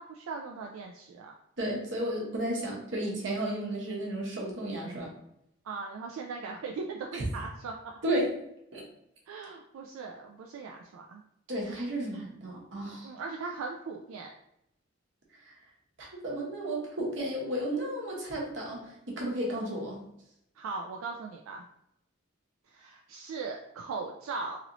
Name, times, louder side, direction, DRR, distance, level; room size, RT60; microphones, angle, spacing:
voice 1, 0.1-1.3 5.6-7.9 9.3-11.2 13.0-14.3 20.6-21.6 22.7-24.6, right 4 dB, 90° right, 1 dB, 0.3 m, -39 dB
voice 2, 1.6-5.1 7.1-7.2 8.0-8.3 8.7-8.8 11.5-13.1 15.4-15.6 16.0-20.0, right 1 dB, 65° right, -2 dB, 0.9 m, -33 dB
3.0 x 2.9 x 2.6 m, 0.79 s
head